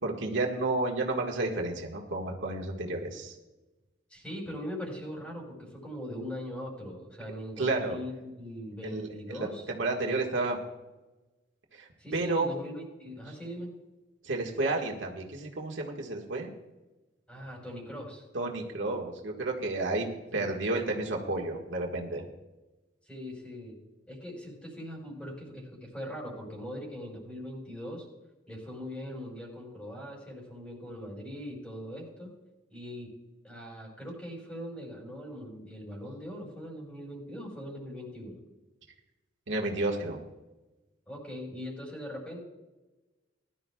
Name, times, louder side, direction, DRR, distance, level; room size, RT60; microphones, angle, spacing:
voice 1, 0.0-3.4 7.6-8.0 8.8-10.6 11.7-12.5 14.2-16.5 18.3-20.1 20.3-22.2 35.9-36.0 39.5-40.2, right 2 dB, 85° right, 0 dB, 1.7 m, -31 dB
voice 2, 4.1-9.7 12.0-13.7 17.3-18.2 20.4-20.7 23.0-23.7 24.1-28.0 28.5-32.3 32.7-33.1 33.4-38.4 41.1-42.4, equal, 5° left, -1 dB, 4.7 m, -41 dB
20.0 x 12.0 x 2.4 m, 1.1 s
head